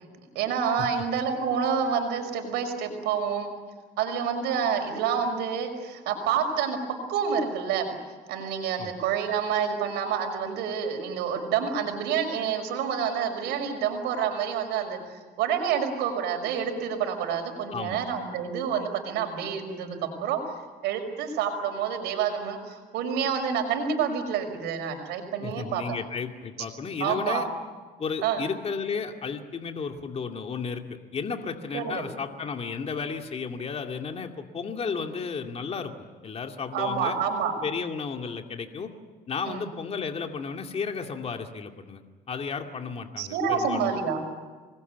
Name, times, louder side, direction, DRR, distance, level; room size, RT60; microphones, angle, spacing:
voice 1, 0.4-3.5 4.0-6.8 7.1-7.9 8.3-20.4 20.8-25.8 27.0-27.5 28.2-28.4 31.7-32.0 36.7-37.5 39.4-39.7 43.2-44.2, right 7 dB, 85° right, 6 dB, 5.6 m, -28 dB
voice 2, 25.4-27.5 28.0-30.8 31.1-35.9 36.2-37.2 37.6-38.9 39.3-43.9, left 5 dB, 35° left, 4 dB, 2.4 m, -33 dB
26.5 x 21.0 x 9.4 m, 1.4 s
cardioid pair, 110°, 17 cm